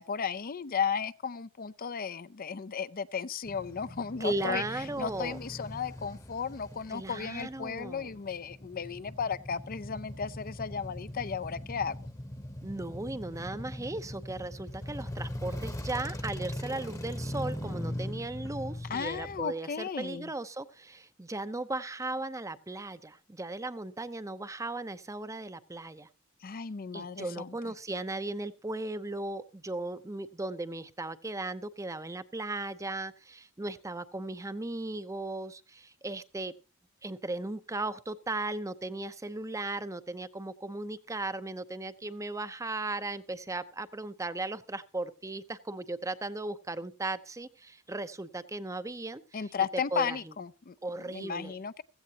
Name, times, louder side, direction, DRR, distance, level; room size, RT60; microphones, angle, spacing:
voice 1, 0.0-4.6 5.0-12.0 18.9-20.3 26.4-27.7 49.3-51.8, left 6 dB, 45° left, 0.5 m, -35 dB
Male speech man speaking / Motorcycle / Idling, 3.4-19.4, left 1 dB, 15° left, 1.1 m, -41 dB
voice 2, 4.2-5.4 6.9-8.1 12.6-26.1 26.9-36.5 37.0-49.4 49.9-50.2 50.8-51.5, right 2 dB, 15° right, 0.7 m, -37 dB
16.0 x 15.0 x 2.8 m
head